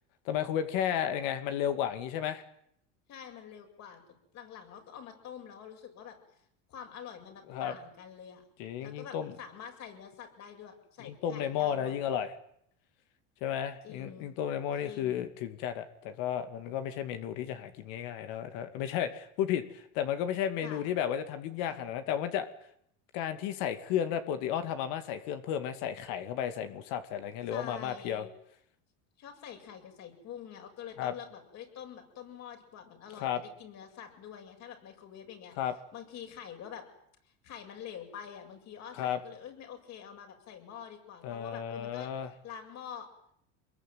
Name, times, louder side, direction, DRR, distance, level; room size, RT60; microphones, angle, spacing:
voice 1, 0.2-2.4 7.5-7.8 8.6-9.3 11.0-12.3 13.4-22.5 23.1-28.2 31.0-31.1 33.2-33.4 35.6-35.7 39.0-39.2 41.2-42.3, left 9 dB, 70° left, 9 dB, 2.5 m, -33 dB
voice 2, 3.1-4.0 4.3-6.2 6.7-8.4 8.8-12.3 13.8-14.3 14.8-15.3 20.6-20.8 21.7-21.9 27.5-28.3 29.2-35.6 35.9-36.8 37.2-42.1 42.4-43.1, left 8 dB, 50° left, 4 dB, 7.8 m, -46 dB
25.0 x 22.0 x 9.4 m, 0.70 s
supercardioid pair, 120°, 35 cm